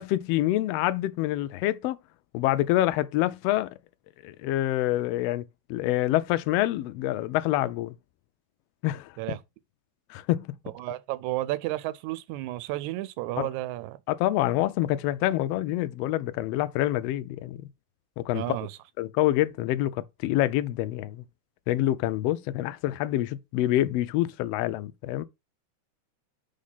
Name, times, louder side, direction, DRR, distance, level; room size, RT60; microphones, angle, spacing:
voice 1, 0.0-2.0 2.3-3.7 4.2-7.9 8.8-9.4 10.1-10.5 13.4-13.5 14.1-17.6 18.2-18.6 19.0-21.2 21.7-25.2, left 15 dB, 80° left, 1.4 m, -26 dB
voice 2, 10.8-14.0 18.3-18.8, right 16 dB, 85° right, 1.9 m, -32 dB
5.2 x 4.1 x 5.5 m
omnidirectional pair, 3.4 m